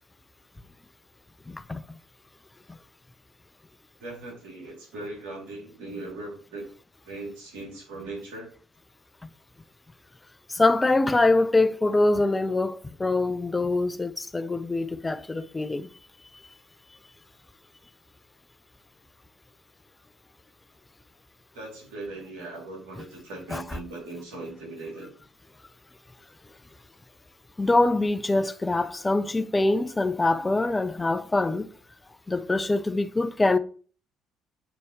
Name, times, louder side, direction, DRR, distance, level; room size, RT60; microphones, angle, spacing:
voice 1, 1.5-1.8 10.5-15.9 23.5-23.6 27.6-31.7 32.3-33.6, left 2 dB, 20° left, 0.6 m, -24 dB
voice 2, 4.0-6.6 7.0-8.5 21.5-25.1, right 2 dB, 80° right, 3.1 m, -39 dB
8.0 x 4.2 x 3.2 m
supercardioid pair, 65°, 0 cm